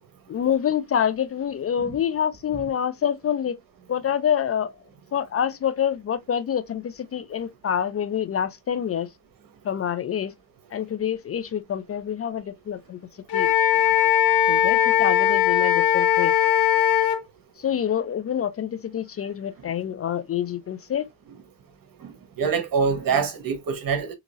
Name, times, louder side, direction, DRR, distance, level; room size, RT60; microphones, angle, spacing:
voice 1, 0.3-3.6 3.9-4.7 5.1-9.1 9.6-10.3 10.7-13.0 13.3-13.5 14.5-16.3 17.6-21.1, left 9 dB, 40° left, 0.4 m, -26 dB
Wind instrument woodwind instrument, 13.3-17.2, left 10 dB, 80° left, 1.0 m, -19 dB
voice 2, 22.0-24.1, right 5 dB, 60° right, 1.2 m, -25 dB
3.8 x 2.9 x 2.4 m
cardioid pair, 85°, 38 cm